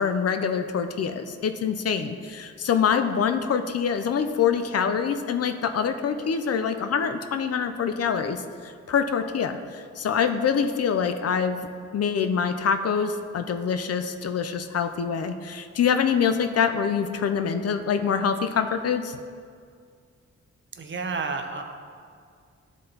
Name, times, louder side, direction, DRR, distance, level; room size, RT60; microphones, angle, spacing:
voice 1, 0.0-11.7 11.9-19.2, left 7 dB, 55° left, 8 dB, 0.5 m, -25 dB
voice 2, 20.7-21.6, right 4 dB, 40° right, 5 dB, 0.7 m, -30 dB
11.5 x 4.1 x 3.9 m, 2.2 s
cardioid pair, 95°, 29 cm